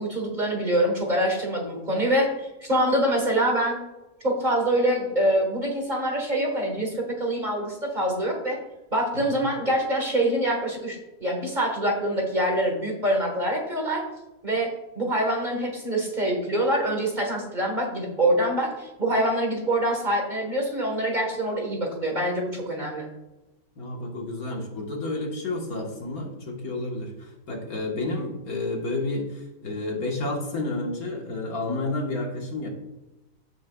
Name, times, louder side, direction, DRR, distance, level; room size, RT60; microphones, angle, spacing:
voice 1, 0.0-3.8 4.2-8.6 8.9-14.0 14.4-14.7 15.0-23.1, right 1 dB, 30° right, 0 dB, 1.7 m, -25 dB
voice 2, 9.1-9.4 23.8-32.7, left 2 dB, 65° left, 0 dB, 2.0 m, -30 dB
16.0 x 6.0 x 2.4 m, 1.0 s
omnidirectional pair, 1.7 m